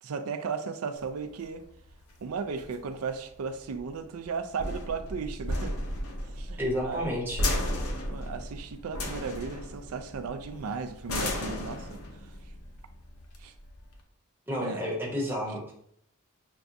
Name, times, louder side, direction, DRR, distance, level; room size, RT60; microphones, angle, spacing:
voice 1, 0.0-1.6 2.2-5.8 6.3-7.1 8.1-12.0 13.4-13.5 14.6-14.8, right 5 dB, 75° right, 9 dB, 0.4 m, -35 dB
sound 1, 1.0-14.0, left 1 dB, 85° left, 0.7 m, -35 dB
voice 2, 6.6-7.5 14.5-15.7, equal, 10° right, -4 dB, 1.0 m, -31 dB
6.0 x 2.3 x 2.6 m, 0.70 s
head